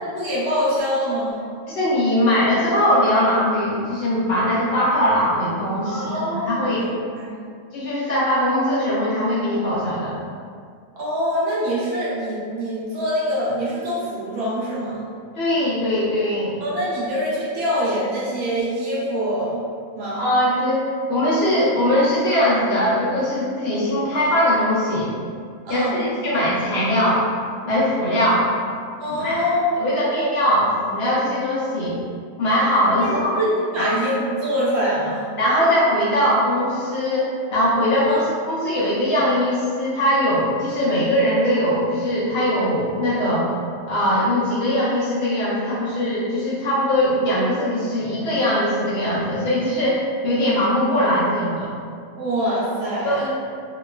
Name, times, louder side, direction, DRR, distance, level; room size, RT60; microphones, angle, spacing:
voice 1, 0.0-1.4 5.8-6.9 7.2-7.3 11.0-15.0 16.6-19.6 20.0-20.2 25.6-26.0 29.0-30.0 33.0-35.2 38.1-38.2 52.2-53.3, equal, 90° right, -8 dB, 1.1 m, -24 dB
voice 2, 1.7-6.8 7.7-10.1 15.4-16.6 20.1-25.1 25.7-27.2 27.7-28.5 29.1-29.5 29.8-32.0 32.4-33.4 33.8-33.9 35.4-43.5 43.9-51.7 53.0-53.3, equal, 60° left, -8 dB, 0.7 m, -21 dB
2.8 x 2.3 x 2.2 m, 2.2 s
omnidirectional pair, 1.5 m